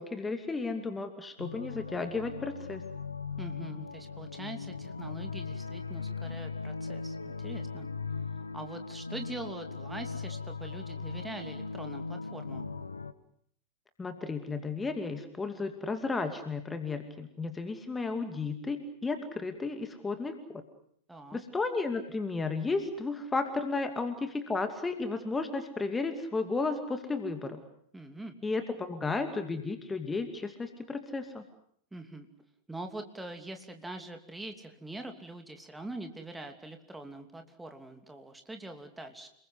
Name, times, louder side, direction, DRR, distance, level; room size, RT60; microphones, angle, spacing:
voice 1, 0.0-2.8 14.0-20.6 21.3-27.6 28.4-31.4, left 3 dB, 15° left, 7 dB, 2.5 m, -33 dB
sound 1, 1.4-13.1, left 4 dB, 75° left, 1.4 m, -39 dB
voice 2, 3.4-7.9 8.5-12.7 21.1-21.4 27.9-28.4 31.9-32.3 32.7-39.3, right 2 dB, 5° right, 6 dB, 2.9 m, -43 dB
29.5 x 21.0 x 8.0 m, 0.66 s
figure-of-eight pair, 90°, 0 cm